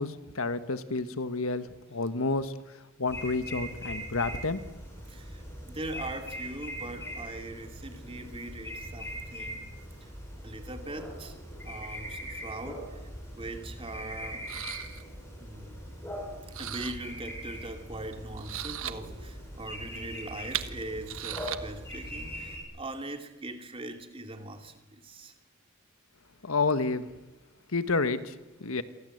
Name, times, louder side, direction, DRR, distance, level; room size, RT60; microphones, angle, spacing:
voice 1, 0.0-2.5 3.0-4.6 26.4-27.1 27.7-28.3 28.6-28.8, left 3 dB, 75° left, 12 dB, 1.4 m, -29 dB
sound 1, 3.1-22.6, equal, 15° left, 7.9 m, -41 dB
voice 2, 5.1-9.7 10.0-10.1 10.4-13.0 13.3-14.5 15.4-15.9 16.3-25.3, right 2 dB, 25° right, 6 dB, 2.6 m, -41 dB
sound 2, 13.6-13.7 14.5-15.0 16.5-17.0 18.1-19.0 20.1-21.6, right 11 dB, 70° right, 1.3 m, -36 dB
29.0 x 23.5 x 7.9 m, 1.0 s
head